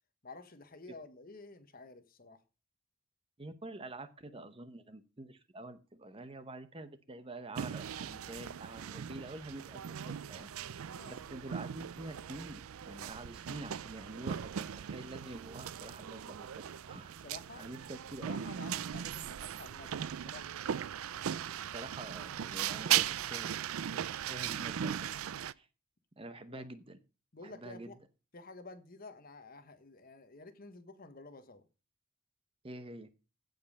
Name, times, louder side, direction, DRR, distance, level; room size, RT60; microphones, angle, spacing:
voice 1, 0.2-2.4 10.9-11.2 17.2-17.7 18.2-20.8 26.5-26.7 27.3-28.0 28.3-31.6, left 3 dB, 45° left, 1.3 m, -51 dB
voice 2, 3.4-17.1 17.5-18.5 21.7-23.5 23.9-25.1 25.4-25.7 26.2-27.0 27.4-27.9 32.6-33.1, right 2 dB, 25° right, 0.9 m, -47 dB
sound 1, 7.6-25.5, right 10 dB, 90° right, 0.4 m, -38 dB
15.5 x 5.3 x 5.3 m
head